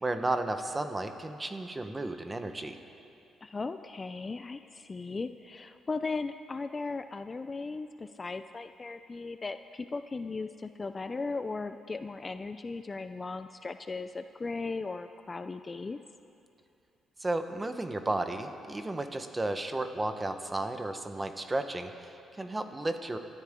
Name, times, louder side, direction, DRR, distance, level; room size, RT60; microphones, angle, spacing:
voice 1, 0.0-2.8 17.2-23.2, right 2 dB, 20° right, 7 dB, 1.2 m, -33 dB
voice 2, 3.4-16.0, left 3 dB, 30° left, 10 dB, 0.5 m, -37 dB
27.5 x 13.0 x 3.8 m, 2.7 s
cardioid pair, 90°, 0 cm